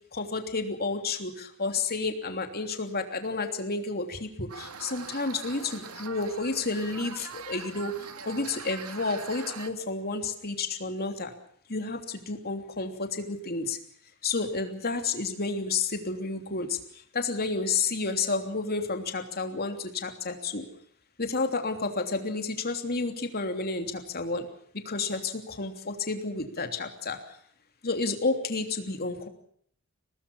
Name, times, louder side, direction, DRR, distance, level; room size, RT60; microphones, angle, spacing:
voice 1, 0.1-11.3 11.7-13.8 14.2-20.7 21.2-24.5 24.8-27.2 27.8-29.3, left 3 dB, 45° left, 6 dB, 3.1 m, -31 dB
sound 1, 4.5-9.7, right 6 dB, 85° right, 2.2 m, -42 dB
24.5 x 19.0 x 7.1 m, 0.64 s
head